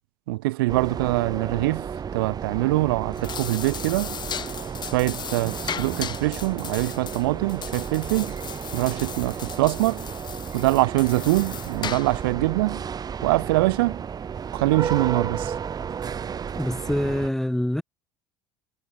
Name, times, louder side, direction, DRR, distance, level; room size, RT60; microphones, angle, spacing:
voice 1, 0.3-1.9 2.1-4.1 4.9-8.4 8.7-10.0 10.5-12.8 13.2-14.0 14.5-15.5, right 20 dB, 85° right, 1.4 m, -24 dB
sound 1, 0.7-17.3, right 7 dB, 35° right, 5.0 m, -33 dB
sound 2, 3.0-12.3, left 8 dB, 40° left, 5.7 m, -37 dB
voice 2, 16.5-17.8, left 1 dB, 5° left, 3.2 m, -25 dB
supercardioid pair, 95°, 12 cm